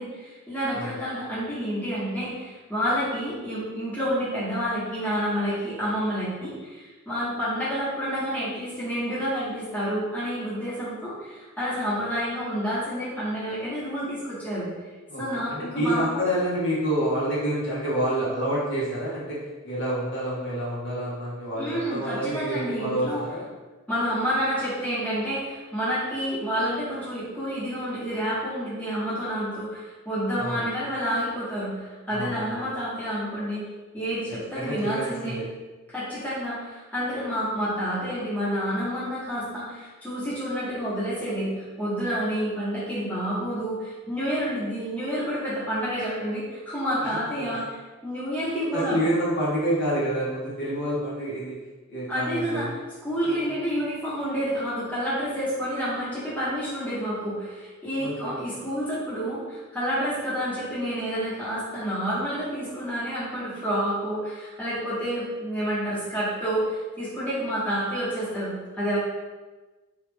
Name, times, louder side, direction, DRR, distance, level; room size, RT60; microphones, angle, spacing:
voice 1, 0.0-14.7 15.2-16.2 21.6-23.2 23.9-33.6 33.9-35.4 35.9-47.6 48.0-49.0 52.1-52.7 53.0-69.0, equal, 5° left, -11 dB, 1.0 m, -29 dB
voice 2, 15.5-23.4 30.4-30.6 32.1-32.6 34.5-35.5 47.3-47.4 48.7-51.6 51.9-52.7 53.2-53.5 58.0-58.4, right 1 dB, 60° left, -8 dB, 1.0 m, -28 dB
3.1 x 2.4 x 3.4 m, 1.3 s
head